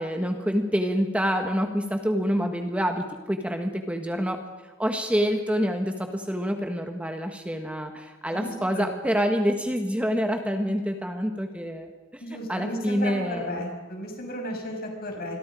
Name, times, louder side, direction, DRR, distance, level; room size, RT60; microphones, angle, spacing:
voice 1, 0.0-4.4 4.6-12.2 12.5-13.6, equal, 5° right, 5 dB, 1.5 m, -27 dB
voice 2, 8.3-8.9 12.2-15.4, equal, 50° left, 2 dB, 5.8 m, -34 dB
27.5 x 22.5 x 5.0 m, 1.2 s
head